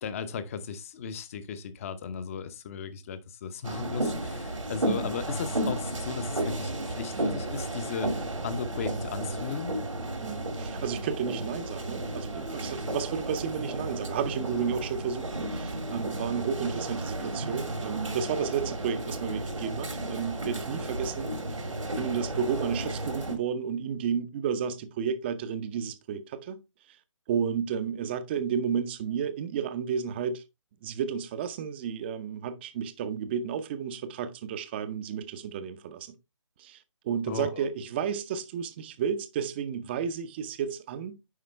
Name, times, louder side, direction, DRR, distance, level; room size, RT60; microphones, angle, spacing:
voice 1, 0.0-8.1 8.4-9.7 37.3-37.6, left 6 dB, 25° left, 0.8 m, -36 dB
sound 1, 3.6-23.3, right 1 dB, 80° right, 2.2 m, -33 dB
voice 2, 10.2-21.7 22.0-26.6 27.3-30.4 30.8-36.1 36.6-41.1, right 7 dB, 20° right, 0.7 m, -32 dB
9.6 x 5.1 x 3.3 m
figure-of-eight pair, 150°, 16 cm